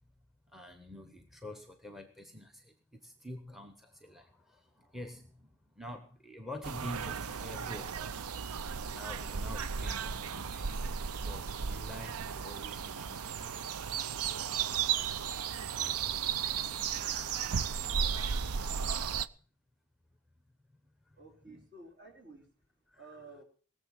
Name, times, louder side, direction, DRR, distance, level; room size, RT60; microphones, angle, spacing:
voice 1, 0.5-2.5 3.0-3.7 4.0-4.3 4.9-5.2 5.8-8.1 8.9-10.7 11.2-13.5 21.5-21.6, left 1 dB, ahead, 8 dB, 0.9 m, -46 dB
sound 1, 6.6-19.3, right 7 dB, 85° right, 0.6 m, -35 dB
voice 2, 21.1-22.5 23.0-23.4, right 2 dB, 50° right, 2 dB, 3.9 m, -52 dB
19.0 x 7.3 x 7.5 m, 0.42 s
head